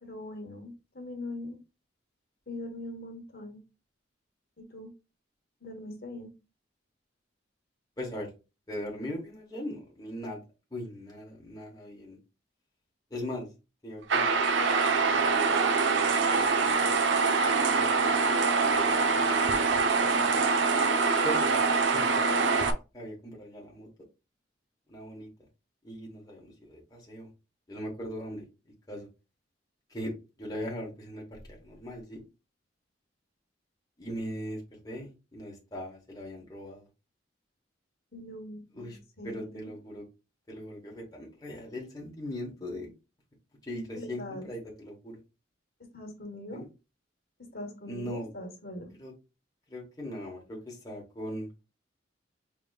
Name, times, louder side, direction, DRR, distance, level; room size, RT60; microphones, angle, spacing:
voice 1, 0.0-1.6 2.5-3.6 4.6-4.9 5.6-6.3 38.1-39.7 43.9-44.5 45.9-46.6 47.5-48.9, left 1 dB, 55° left, 2 dB, 1.3 m, -41 dB
voice 2, 8.0-8.3 8.7-10.4 10.7-12.2 13.1-13.5 13.8-15.4 15.8-16.5 16.8-17.0 17.3-18.1 18.6-19.2 20.1-20.6 21.2-22.6 22.9-23.9 24.9-25.3 25.8-27.3 27.7-28.4 28.9-29.1 29.9-32.2 34.0-36.8 38.8-39.0 39.2-40.0 40.5-42.9 43.6-45.2 46.5-46.6 47.9-48.3 49.0-49.1 49.7-51.6, equal, 20° left, -2 dB, 1.1 m, -40 dB
sound 1, 14.1-22.7, right 4 dB, 75° right, 0.6 m, -24 dB
4.9 x 3.4 x 2.4 m, 0.29 s
head